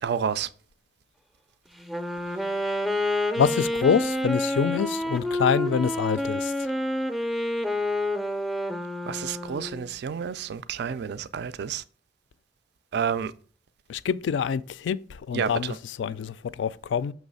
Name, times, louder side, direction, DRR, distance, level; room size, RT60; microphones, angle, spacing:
voice 1, 0.0-0.5 9.1-11.8 12.9-13.3 15.3-15.8, right 7 dB, 60° right, 0.3 m, -29 dB
Wind instrument woodwind instrument, 1.8-9.9, left 1 dB, ahead, 0.4 m, -28 dB
voice 2, 3.4-6.5 13.9-15.0 15.3-17.1, left 7 dB, 70° left, 0.3 m, -26 dB
6.2 x 3.1 x 5.3 m
head